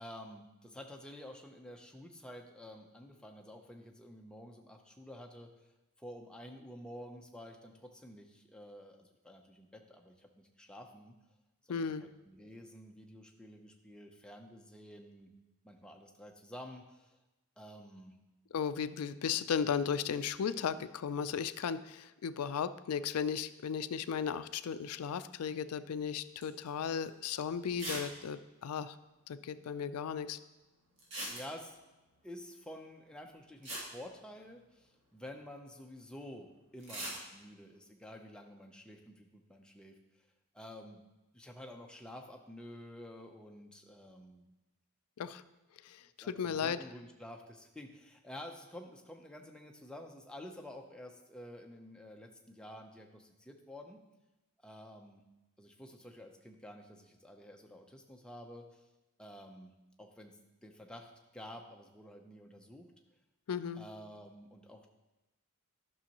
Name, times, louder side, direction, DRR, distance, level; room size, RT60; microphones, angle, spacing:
voice 1, 0.0-5.5 6.0-11.1 11.7-15.3 15.6-17.2 17.6-18.1 31.3-31.8 32.2-39.9 40.5-41.0 41.3-44.5 46.2-54.0 54.6-55.2 55.6-58.8 59.2-59.7 60.0-60.3 60.6-62.9 63.8-64.9, left 1 dB, 5° left, 2 dB, 0.6 m, -50 dB
voice 2, 11.7-12.1 18.5-29.0 29.3-30.4 45.2-45.4 45.8-46.8 63.5-63.9, left 7 dB, 85° left, 13 dB, 0.4 m, -35 dB
sound 1, 26.4-26.7 27.1-27.2 27.8-28.1 28.4-28.5 28.6-28.7 31.0-31.8 33.2-33.3 33.6-34.8 36.8-37.2, right 1 dB, 55° right, 2.2 m, -41 dB
11.0 x 6.3 x 2.9 m, 1.0 s
head